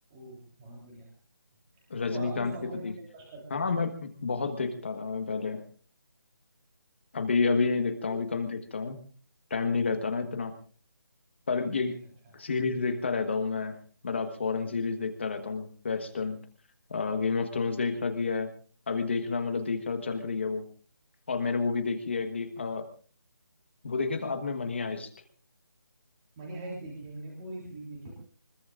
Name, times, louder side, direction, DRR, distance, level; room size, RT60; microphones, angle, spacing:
voice 1, 0.1-1.1 1.8-3.7 26.4-28.1, right 2 dB, 10° right, -2 dB, 3.4 m, -42 dB
voice 2, 1.9-2.5 2.8-2.9 3.5-5.6 7.1-9.0 9.5-10.5 11.5-12.0 12.3-13.8 14.0-16.4 16.9-18.5 18.9-20.6 21.3-22.9 23.8-25.1, left 4 dB, 30° left, 7 dB, 1.4 m, -30 dB
24.5 x 21.0 x 2.5 m, 0.41 s
figure-of-eight pair, 175°, 12 cm